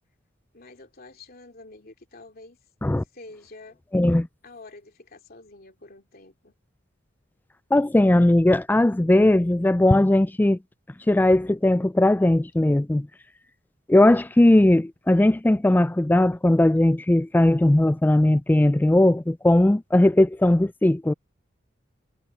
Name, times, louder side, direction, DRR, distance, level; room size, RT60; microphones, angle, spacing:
voice 1, 0.5-2.6 3.0-3.8 4.4-6.5, left 2 dB, 50° left, 2.9 m, -47 dB
voice 2, 3.9-4.3 7.7-10.6 11.1-13.1 13.9-21.1, left 1 dB, 10° left, 0.3 m, -18 dB
head